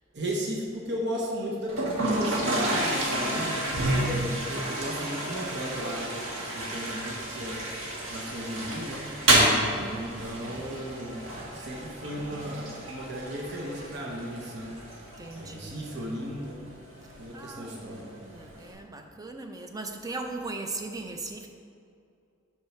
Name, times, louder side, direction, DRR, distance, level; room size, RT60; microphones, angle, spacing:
voice 1, 0.1-6.2 6.5-7.7 8.1-9.1 9.9-14.8 15.3-16.6 17.2-18.0, equal, 55° right, -2 dB, 0.9 m, -35 dB
Toilet flush, 1.7-18.7, right 1 dB, 70° right, 1.3 m, -30 dB
voice 2, 9.8-10.8 15.2-15.8 17.3-21.5, right 3 dB, 15° right, 4 dB, 0.5 m, -39 dB
7.4 x 4.6 x 5.8 m, 2.4 s
head